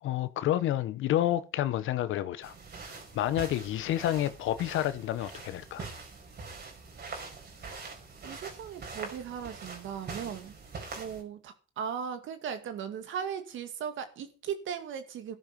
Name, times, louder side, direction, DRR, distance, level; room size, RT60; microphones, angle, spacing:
voice 1, 0.0-2.5 2.8-5.8, left 12 dB, 85° left, 0.9 m, -29 dB
sound 1, 2.4-11.2, right 4 dB, 55° right, 4.8 m, -44 dB
voice 2, 8.2-10.6 11.0-15.4, right 8 dB, 80° right, 2.2 m, -37 dB
13.5 x 11.0 x 5.3 m
cardioid pair, 90°, 20 cm